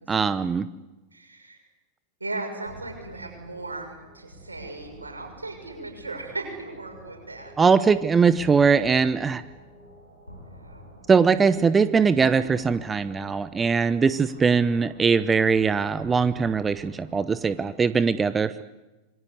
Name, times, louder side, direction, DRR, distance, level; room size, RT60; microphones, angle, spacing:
voice 1, 0.1-0.7 7.6-9.4 11.1-18.6, right 5 dB, 15° right, 15 dB, 0.8 m, -21 dB
voice 2, 1.1-1.6 2.2-7.5 10.5-10.8, right 2 dB, 80° right, 4 dB, 6.5 m, -37 dB
sound 1, 2.7-17.9, equal, 85° left, 6.8 m, -48 dB
26.5 x 23.5 x 8.2 m, 1.1 s
figure-of-eight pair, 90°, 0 cm